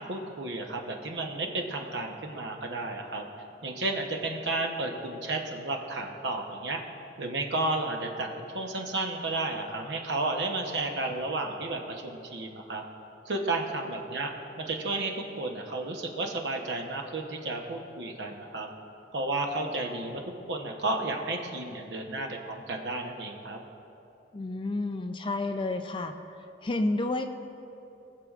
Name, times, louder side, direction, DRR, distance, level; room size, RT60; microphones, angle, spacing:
voice 1, 0.0-3.3 3.6-6.8 7.2-12.8 13.3-14.3 14.6-18.7 19.1-20.2 20.5-23.6, right 2 dB, 70° right, 2 dB, 0.9 m, -32 dB
voice 2, 24.3-26.1 26.6-27.2, left 2 dB, 25° left, 6 dB, 0.4 m, -30 dB
19.0 x 6.8 x 2.4 m, 2.8 s
head